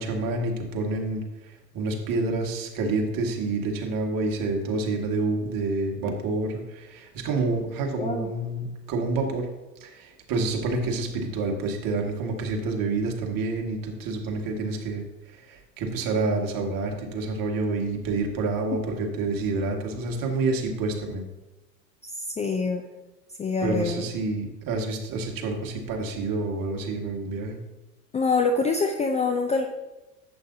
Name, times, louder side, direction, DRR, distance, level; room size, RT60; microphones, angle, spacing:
voice 1, 0.0-9.5 9.8-15.0 15.3-21.2 23.6-27.6, right 3 dB, 40° right, 2 dB, 2.0 m, -28 dB
voice 2, 8.0-8.3 22.1-22.8 23.4-24.0 28.1-29.7, left 4 dB, 15° left, 4 dB, 0.5 m, -25 dB
11.0 x 8.2 x 2.8 m, 1.0 s
hypercardioid pair, 85°, 50 cm